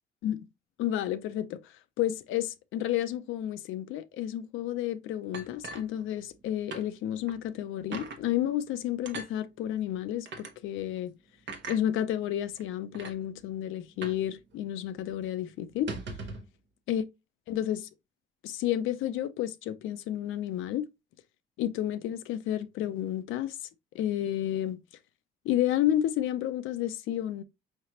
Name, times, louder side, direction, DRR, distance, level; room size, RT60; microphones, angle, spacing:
voice 1, 0.8-1.6 2.0-11.1 11.7-15.9 16.9-17.0 17.5-17.9 18.4-20.8 21.6-23.6 23.9-24.8 25.4-27.4, left 12 dB, 90° left, 0.5 m, -31 dB
sound 1, 5.3-6.4 6.7-6.9 7.3-7.4 7.9-8.2 9.1-9.3 10.3-10.5 11.5-11.8 12.6-12.7 12.9-13.2 14.0-14.3 14.5-14.6 15.0-15.2 15.7-16.5, right 3 dB, 65° right, 1.0 m, -39 dB
4.8 x 3.3 x 2.8 m
cardioid pair, 90°, 20 cm